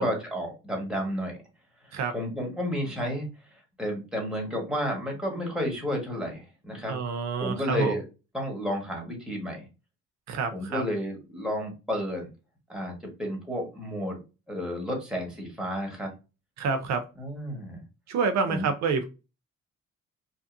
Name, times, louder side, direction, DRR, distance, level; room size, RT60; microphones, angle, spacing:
voice 1, 0.0-1.4 2.1-7.0 7.4-8.0 8.3-9.7 10.5-12.3 12.7-14.2 14.5-16.1 17.2-17.8 18.5-18.7, equal, 5° right, 0 dB, 1.3 m, -31 dB
voice 2, 6.9-8.0 10.3-10.8 16.6-17.0 18.1-19.0, right 5 dB, 65° right, 7 dB, 0.5 m, -28 dB
2.8 x 2.4 x 2.4 m, 0.29 s
cardioid pair, 90°, 30 cm